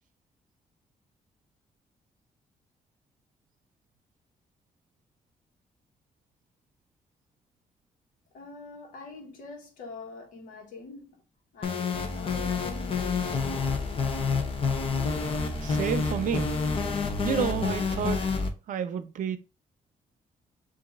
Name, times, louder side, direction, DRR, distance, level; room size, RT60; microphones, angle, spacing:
voice 1, 8.3-11.2 11.5-14.4, left 3 dB, 85° left, 1.2 m, -45 dB
sound 1, 11.6-18.5, left 4 dB, 40° left, 0.7 m, -28 dB
voice 2, 15.6-16.5 17.2-18.2 18.7-19.4, right 8 dB, 75° right, 0.5 m, -30 dB
7.1 x 2.6 x 2.5 m
cardioid pair, 125°, 14 cm